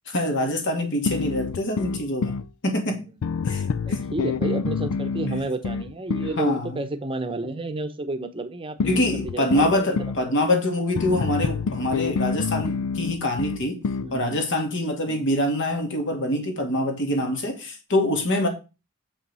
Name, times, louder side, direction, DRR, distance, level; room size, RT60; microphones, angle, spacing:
voice 1, 0.1-2.4 2.6-3.1 3.5-4.0 6.4-6.8 8.9-13.8 14.1-18.5, left 1 dB, 60° left, 2.3 m, -25 dB
sound 1, 1.1-2.5 3.2-6.4 8.8-10.2 10.9-14.1, left 5 dB, 85° left, 0.4 m, -27 dB
voice 2, 3.8-10.0 14.0-14.4 15.1-15.3, right 2 dB, 25° right, 0.8 m, -31 dB
7.1 x 5.9 x 5.5 m
head